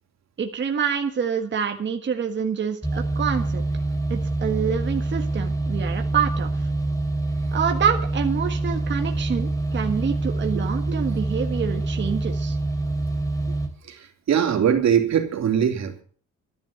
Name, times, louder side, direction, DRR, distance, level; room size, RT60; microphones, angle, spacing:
voice 1, 0.4-3.6 4.1-6.5 7.5-12.6, right 7 dB, 35° right, 4 dB, 1.5 m, -26 dB
sound 1, 2.8-13.7, right 2 dB, 10° left, 2.6 m, -26 dB
voice 2, 14.3-16.0, right 8 dB, 60° right, 3 dB, 3.2 m, -21 dB
13.5 x 10.5 x 7.0 m, 0.43 s
wide cardioid pair, 165°, 31 cm